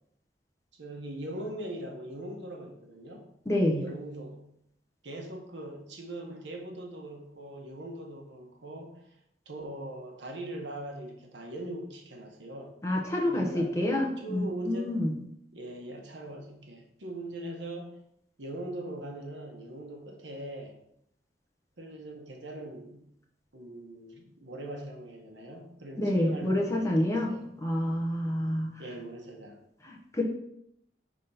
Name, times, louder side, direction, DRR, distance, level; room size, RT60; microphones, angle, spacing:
voice 1, 0.8-3.3 3.7-4.4 5.0-9.1 9.4-12.7 13.3-13.7 14.2-15.0 15.5-17.9 18.4-20.8 21.8-23.1 23.5-27.5 28.8-29.6, right 1 dB, 90° right, 2 dB, 1.2 m, -41 dB
voice 2, 3.5-3.8 12.8-15.1 26.0-28.7 29.8-30.2, left 1 dB, 15° left, -1 dB, 1.0 m, -28 dB
5.2 x 3.7 x 5.6 m, 0.75 s
head